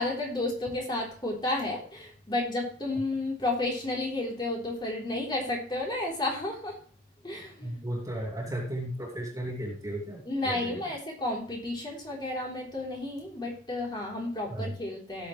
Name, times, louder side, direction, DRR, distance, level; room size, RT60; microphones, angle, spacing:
voice 1, 0.0-6.8 7.2-7.8 10.3-15.3, left 2 dB, 25° left, -2 dB, 3.6 m, -32 dB
voice 2, 7.6-10.8 14.5-14.7, right 1 dB, 15° right, -2 dB, 2.8 m, -35 dB
17.5 x 7.2 x 3.2 m, 0.41 s
head